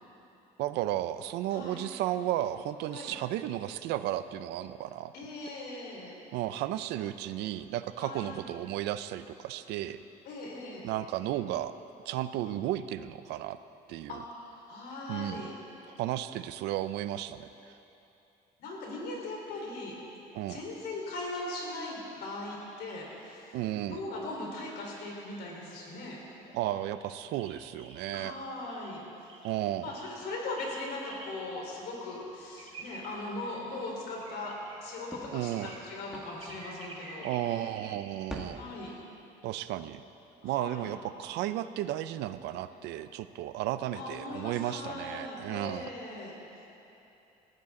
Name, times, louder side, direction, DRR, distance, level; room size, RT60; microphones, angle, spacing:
voice 1, 0.6-5.1 6.3-10.0 10.8-11.7 12.1-13.6 13.9-14.2 15.1-15.4 16.0-17.5 20.3-20.6 23.5-24.0 26.5-28.3 29.4-29.9 35.3-35.7 37.2-38.6 39.4-40.0 40.4-45.9, right 13 dB, 90° right, 12 dB, 0.6 m, -33 dB
voice 2, 1.5-1.9 2.9-3.1 5.1-6.1 8.0-8.3 10.3-10.9 14.1-15.5 18.6-20.0 20.5-23.6 23.9-26.2 28.1-29.0 29.8-37.3 38.6-38.9 40.4-40.9 43.9-46.3, left 2 dB, 75° left, -2 dB, 4.1 m, -39 dB
sound 1, 22.5-23.1 24.1-25.4 26.5-28.0 28.7-28.9 29.3-29.5 29.8-30.1 30.6-30.8 31.1-31.3 31.7-31.8 32.0-32.1 32.3-37.9, right 3 dB, 35° right, 4.4 m, -50 dB
sound 2, 35.1-37.3 37.7-37.8 38.1-38.4, equal, 5° right, 2.1 m, -46 dB
19.0 x 16.0 x 3.8 m, 2.9 s
cardioid pair, 110°, 17 cm